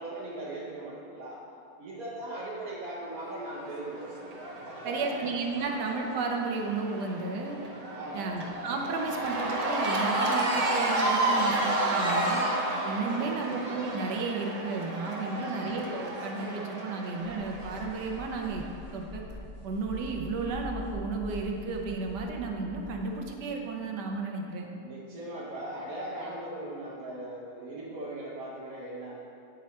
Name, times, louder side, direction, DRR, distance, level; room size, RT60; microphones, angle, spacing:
voice 1, 0.0-1.4 1.8-4.2 4.6-5.1 7.9-8.3 13.1-13.6 15.3-15.7 24.8-29.3, right 1 dB, 60° right, -6 dB, 1.3 m, -39 dB
Cheering / Crowd, 3.3-18.6, right 2 dB, 45° right, 0.5 m, -32 dB
voice 2, 4.8-7.6 8.1-12.4 12.8-18.7 18.9-19.2 19.6-24.7, right 3 dB, 80° right, 2 dB, 1.4 m, -33 dB
sound 1, 17.2-23.2, left 2 dB, 50° left, 1.9 m, -43 dB
8.7 x 5.4 x 4.2 m, 2.6 s
omnidirectional pair, 1.8 m